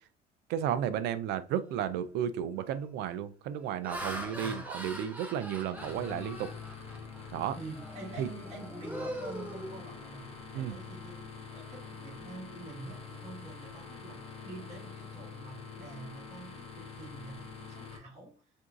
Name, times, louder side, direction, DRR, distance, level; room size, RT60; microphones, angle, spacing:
voice 1, 0.5-6.5 7.3-7.6 8.2-8.3 10.5-10.8, right 9 dB, 85° right, 0.4 m, -33 dB
Laughter, 1.7-2.0 2.6-2.9 3.5-7.3 7.8-8.0 8.4-10.3, equal, 10° right, 0.9 m, -42 dB
sound 1, 5.7-18.0, left 5 dB, 35° left, 0.9 m, -46 dB
voice 2, 7.5-18.5, right 2 dB, 40° right, 1.3 m, -47 dB
3.7 x 2.6 x 2.4 m
cardioid pair, 110°, 17 cm